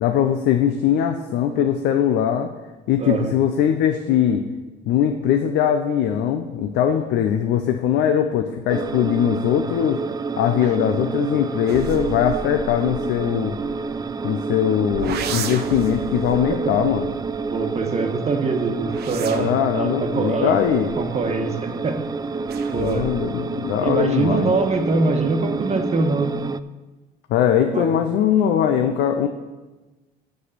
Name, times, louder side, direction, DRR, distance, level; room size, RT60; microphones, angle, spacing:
voice 1, 0.0-2.5 2.9-4.5 4.9-10.0 10.4-13.6 14.2-17.1 19.3-20.9 22.7-24.5 27.3-29.3, left 9 dB, 75° left, 7 dB, 0.6 m, -21 dB
voice 2, 3.0-3.4 10.6-10.8 17.4-20.5 21.0-22.0 22.7-23.1 23.8-26.4 27.7-27.9, right 3 dB, 40° right, 5 dB, 1.3 m, -23 dB
sound 1, 8.7-26.6, right 4 dB, 20° right, 0.3 m, -29 dB
sound 2, 11.7-14.4 14.9-18.0 18.6-21.6 22.5-23.4 23.7-24.2, right 7 dB, 65° right, 0.8 m, -35 dB
7.5 x 6.4 x 6.7 m, 1.2 s
supercardioid pair, 90°, 18 cm